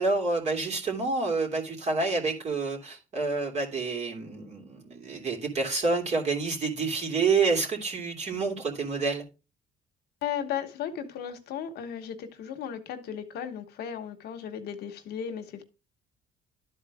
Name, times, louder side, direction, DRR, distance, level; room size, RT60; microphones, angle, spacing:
voice 1, 0.0-9.2, right 4 dB, 40° right, 2.9 m, -28 dB
voice 2, 10.2-15.6, left 8 dB, 75° left, 1.2 m, -35 dB
12.0 x 4.2 x 3.5 m
cardioid pair, 110°, 17 cm